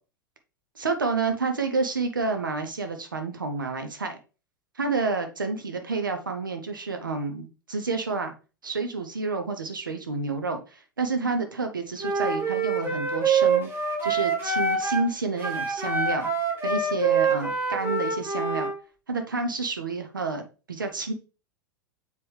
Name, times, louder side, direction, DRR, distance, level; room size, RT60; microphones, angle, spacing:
voice 1, 0.8-4.2 4.8-8.3 8.6-13.7 14.0-16.3 16.6-18.7 19.1-21.1, right 4 dB, 75° right, 6 dB, 0.9 m, -29 dB
Wind instrument woodwind instrument, 12.0-15.1 15.4-18.8, right 4 dB, 20° right, 1.7 m, -26 dB
6.9 x 4.9 x 3.3 m, 0.33 s
figure-of-eight pair, 90°, 11 cm